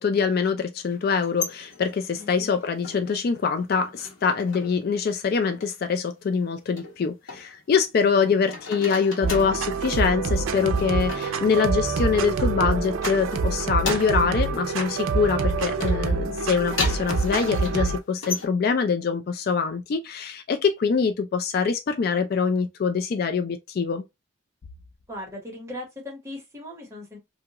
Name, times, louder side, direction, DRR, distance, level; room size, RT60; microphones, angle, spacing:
voice 1, 0.0-24.0, left 5 dB, 50° left, 0.3 m, -24 dB
sound 1, 1.1-3.3 3.6-4.9 5.1-5.7 6.8-8.1 8.4-9.6 10.5-12.5 12.9-14.4 14.8-18.5, left 3 dB, 75° left, 1.1 m, -36 dB
voice 2, 2.1-2.6 8.0-8.6 25.1-27.2, left 1 dB, 15° right, 1.1 m, -39 dB
sound 2, 9.2-18.0, right 4 dB, 85° right, 0.4 m, -26 dB
2.8 x 2.4 x 2.8 m
head